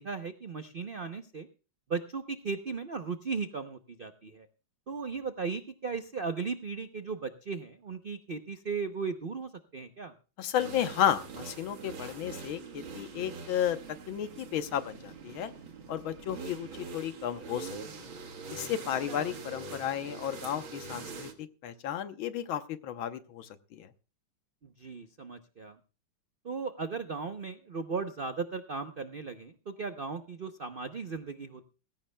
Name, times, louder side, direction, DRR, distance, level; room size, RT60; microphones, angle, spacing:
voice 1, 0.0-1.5 1.9-4.5 4.9-10.1 19.1-19.3 24.6-25.8 26.4-31.7, right 5 dB, 65° right, 8 dB, 0.5 m, -37 dB
voice 2, 10.4-13.8 14.1-15.5 15.9-18.1 18.5-23.9, left 10 dB, 80° left, 10 dB, 1.8 m, -33 dB
sound 1, 10.6-21.3, right 4 dB, 85° right, 2.3 m, -44 dB
19.5 x 16.5 x 2.3 m, 0.34 s
omnidirectional pair, 2.2 m